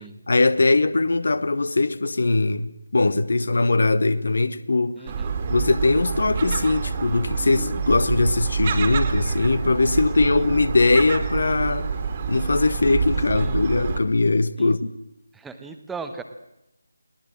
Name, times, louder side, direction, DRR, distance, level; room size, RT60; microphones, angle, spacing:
voice 1, 0.3-5.0 5.5-11.9 12.3-14.9, left 3 dB, 50° left, 1.2 m, -21 dB
voice 2, 5.0-5.4 10.3-10.5 13.4-13.6 14.6-14.7 15.3-16.2, right 5 dB, 5° right, 1.1 m, -38 dB
Gull seagull, 5.1-14.0, right 5 dB, 25° right, 2.3 m, -27 dB
22.0 x 18.5 x 7.8 m
figure-of-eight pair, 155°, 0 cm